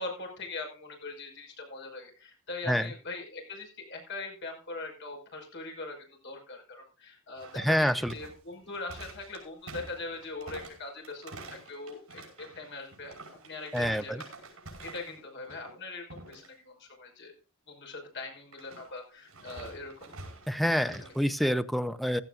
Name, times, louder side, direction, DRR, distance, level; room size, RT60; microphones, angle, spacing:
voice 1, 0.0-6.0 6.2-13.1 13.4-14.3 14.8-17.3 17.7-20.1 20.9-21.1, left 3 dB, 55° left, 2 dB, 5.6 m, -41 dB
sound 1, 7.4-15.2 15.5-15.8 16.1-16.5 18.5-21.2, right 2 dB, 75° right, 5.2 m, -47 dB
voice 2, 7.6-8.1 13.7-14.2 20.5-22.2, equal, ahead, 11 dB, 0.7 m, -27 dB
16.0 x 13.5 x 2.5 m, 0.36 s
head